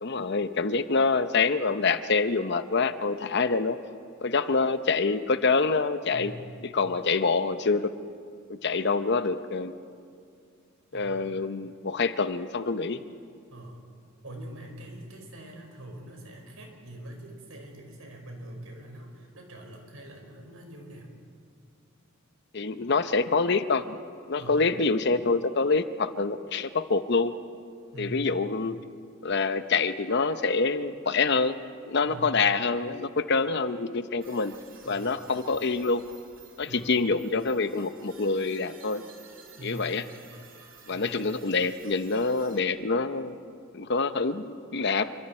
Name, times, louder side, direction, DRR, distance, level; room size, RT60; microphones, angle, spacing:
voice 1, 0.0-3.8 4.2-6.3 6.6-7.9 8.5-9.7 10.9-13.0 22.5-24.0 24.3-27.3 28.0-28.8 29.2-31.6 31.8-34.5 34.9-36.0 36.6-39.0 39.6-40.1 40.9-43.4 43.7-45.1, left 4 dB, 55° left, 11 dB, 0.8 m, -26 dB
voice 2, 6.1-6.5 10.9-11.3 13.5-13.8 14.2-21.1 24.4-24.6 27.9-28.3 32.0-32.4 34.8-35.3 36.6-37.0 39.6-39.9 40.9-41.2, right 1 dB, 90° right, 2 dB, 5.0 m, -43 dB
sound 1, 34.2-42.6, right 6 dB, 70° right, 3.1 m, -53 dB
27.5 x 24.5 x 4.4 m, 2.2 s
head